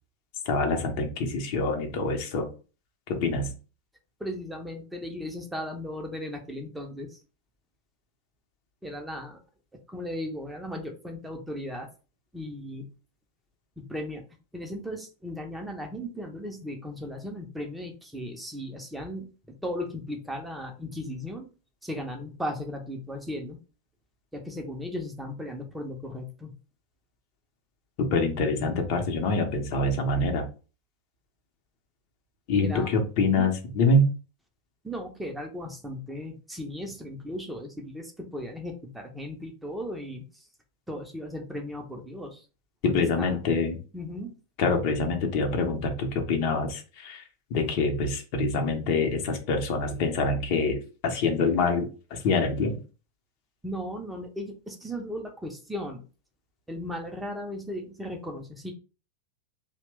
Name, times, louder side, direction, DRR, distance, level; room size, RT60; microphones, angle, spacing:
voice 1, 0.5-2.5 3.1-3.5 28.0-30.5 32.5-34.1 42.8-43.8 44.6-47.2 47.5-52.8, left 3 dB, 45° left, 5 dB, 0.7 m, -25 dB
voice 2, 4.2-7.2 8.8-9.4 9.9-11.9 12.3-12.9 13.8-14.2 14.5-19.3 19.6-21.5 21.8-23.6 24.3-26.5 32.6-32.9 33.3-33.5 34.8-40.5 40.9-42.5 42.8-43.4 43.9-44.3 53.6-56.0 56.7-58.7, left 1 dB, 5° right, 3 dB, 0.6 m, -36 dB
2.8 x 2.1 x 3.2 m, 0.34 s
figure-of-eight pair, 90°, 0 cm